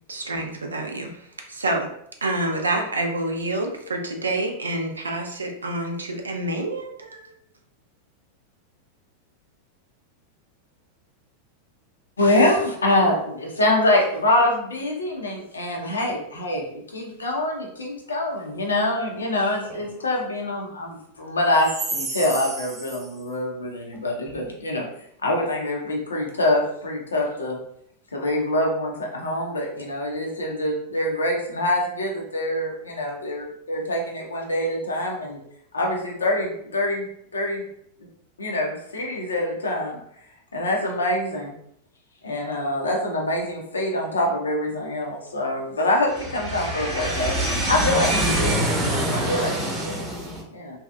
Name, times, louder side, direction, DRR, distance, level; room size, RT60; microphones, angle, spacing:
voice 1, 0.1-1.2 1.5-1.9 2.2-7.3, right 2 dB, 75° right, 2 dB, 0.4 m, -27 dB
voice 2, 12.2-24.9 25.2-27.6 28.1-35.4 35.7-37.1 37.3-37.6 38.4-40.0 40.5-41.5 42.2-48.6 49.1-49.9 50.5-50.8, left 1 dB, 75° left, 0 dB, 0.6 m, -25 dB
voice 3, 46.4-50.4, right 1 dB, 20° right, -3 dB, 0.9 m, -25 dB
2.7 x 2.3 x 2.3 m, 0.72 s
figure-of-eight pair, 90°, 0 cm